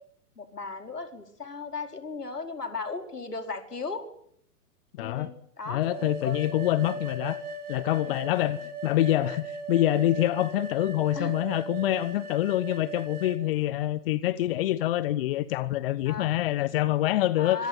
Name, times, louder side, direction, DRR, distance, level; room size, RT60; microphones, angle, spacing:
voice 1, 0.4-4.1 5.0-5.8 6.2-6.4 8.0-8.1 11.1-11.3 16.1-16.3 17.4-17.7, left 4 dB, 75° left, 7 dB, 4.9 m, -36 dB
voice 2, 5.0-5.3 5.7-7.4 7.7-17.6, left 14 dB, 35° left, 18 dB, 1.1 m, -26 dB
sound 1, 5.8-13.4, right 2 dB, 65° right, 5.1 m, -38 dB
26.0 x 22.5 x 8.5 m, 0.68 s
figure-of-eight pair, 115°, 47 cm